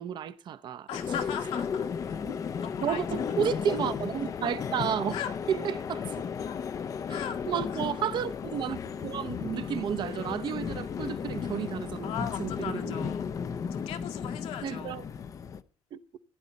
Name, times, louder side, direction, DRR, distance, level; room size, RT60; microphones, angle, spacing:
voice 1, 0.0-0.9 2.8-5.2 5.5-6.3 7.1-7.2 7.5-12.1 12.4-13.1 14.6-15.0 15.9-16.0, right 8 dB, 50° right, 0.8 m, -32 dB
voice 2, 0.9-1.9 2.6-3.0 5.1-5.6 6.4-6.6 7.0-7.9 12.0-13.4 13.7-15.1, left 9 dB, 80° left, 2.0 m, -38 dB
sound 1, 0.9-15.6, left 6 dB, 35° left, 0.6 m, -34 dB
16.0 x 10.5 x 4.1 m
cardioid pair, 145°, 10 cm